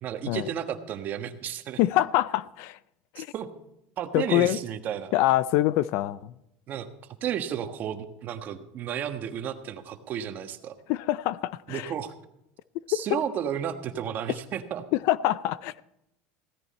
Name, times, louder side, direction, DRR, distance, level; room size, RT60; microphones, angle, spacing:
voice 1, 0.0-1.8 3.1-3.5 4.0-5.1 6.7-6.9 7.2-10.7 11.7-12.1 12.9-14.8, right 9 dB, 40° right, 8 dB, 1.4 m, -32 dB
voice 2, 1.8-2.8 3.1-3.3 4.1-4.6 5.1-6.3 10.9-11.9 12.9-13.2 14.9-15.8, left 15 dB, 65° left, 18 dB, 0.5 m, -25 dB
16.5 x 14.0 x 4.3 m, 0.85 s
supercardioid pair, 135°, 5 cm